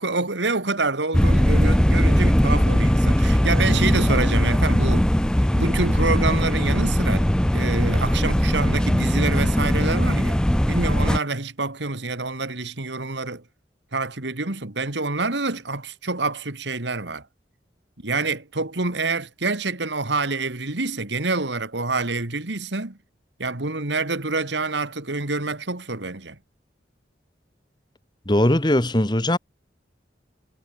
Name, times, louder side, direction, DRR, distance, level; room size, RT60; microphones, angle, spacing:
voice 1, 0.0-5.1 5.5-10.4 10.7-13.4 13.9-17.2 18.0-23.0 23.4-26.4, right 3 dB, 80° right, 2.5 m, -27 dB
sound 1, 1.1-11.2, equal, 5° left, 0.4 m, -19 dB
voice 2, 28.3-29.4, left 1 dB, 25° left, 1.5 m, -19 dB
head